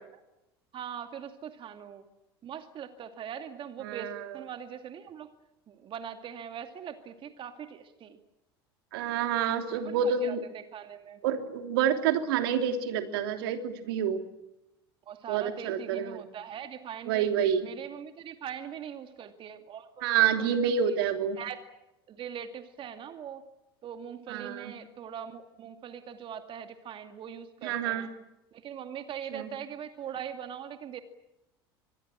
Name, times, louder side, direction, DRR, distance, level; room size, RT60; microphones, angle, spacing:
voice 1, 0.7-2.1 2.4-5.3 5.7-8.2 9.7-11.2 15.1-17.3 17.6-21.0 21.4-21.7 22.1-23.5 23.8-28.1 28.5-31.0, right 8 dB, 40° right, 7 dB, 2.3 m, -41 dB
voice 2, 3.8-4.2 8.9-10.4 11.2-14.2 15.3-16.2 17.1-17.7 20.0-21.4 24.3-24.7 27.6-28.1 29.3-29.5, right 8 dB, 70° right, 6 dB, 3.1 m, -28 dB
25.5 x 21.5 x 9.0 m, 0.91 s
hypercardioid pair, 75°, 13 cm